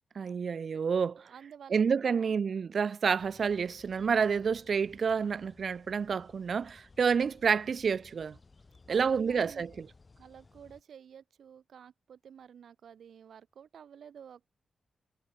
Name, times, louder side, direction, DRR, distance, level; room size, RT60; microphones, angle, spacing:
voice 1, 0.2-1.2 1.7-8.4 8.9-9.9, right 6 dB, 50° right, 0.4 m, -29 dB
voice 2, 1.2-2.3 8.9-9.7 10.2-14.5, right 8 dB, 75° right, 3.9 m, -51 dB
sound 1, 3.2-10.8, left 3 dB, 25° left, 3.4 m, -59 dB
wide cardioid pair, 160°, 0 cm